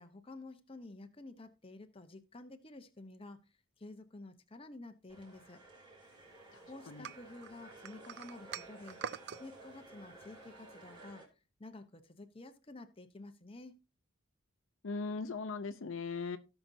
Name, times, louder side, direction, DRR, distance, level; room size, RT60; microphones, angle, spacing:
voice 1, 0.0-3.5 3.8-5.6 6.7-9.0 9.4-11.2 11.6-13.8, left 2 dB, 25° left, 0.8 m, -51 dB
sound 1, 5.1-11.2, right 2 dB, 20° right, 3.1 m, -55 dB
voice 2, 6.5-7.1 14.8-16.4, left 4 dB, 60° left, 0.6 m, -39 dB
sound 2, 7.0-9.4, right 8 dB, 50° right, 0.4 m, -44 dB
17.0 x 5.9 x 2.7 m
head